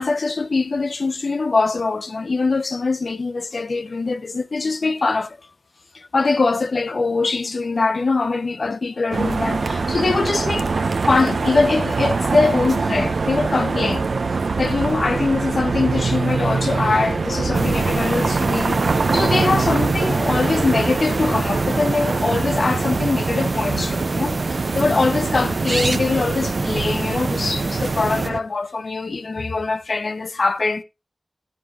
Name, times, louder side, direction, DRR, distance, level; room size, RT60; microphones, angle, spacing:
voice 1, 0.0-5.4 5.9-14.1 14.6-30.8, left 3 dB, 75° left, 0.9 m, -22 dB
sound 1, 9.1-28.4, right 4 dB, 90° right, 0.9 m, -24 dB
sound 2, 17.5-28.3, right 3 dB, 65° right, 1.2 m, -26 dB
14.5 x 13.5 x 2.5 m
wide cardioid pair, 60°, 0 cm